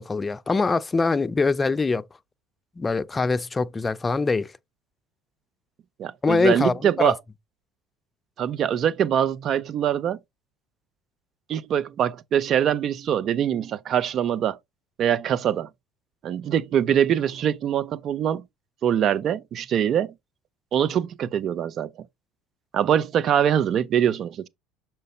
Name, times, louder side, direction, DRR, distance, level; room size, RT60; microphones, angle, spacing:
voice 1, 0.0-2.0 2.8-4.5 6.2-7.1, left 4 dB, 20° left, 0.5 m, -23 dB
voice 2, 6.0-7.2 8.4-10.2 11.5-14.6 15.0-15.7 16.2-18.4 18.8-20.1 20.7-21.9 22.7-24.5, right 9 dB, 45° right, 0.6 m, -23 dB
6.6 x 4.5 x 3.2 m
figure-of-eight pair, 65°, 0 cm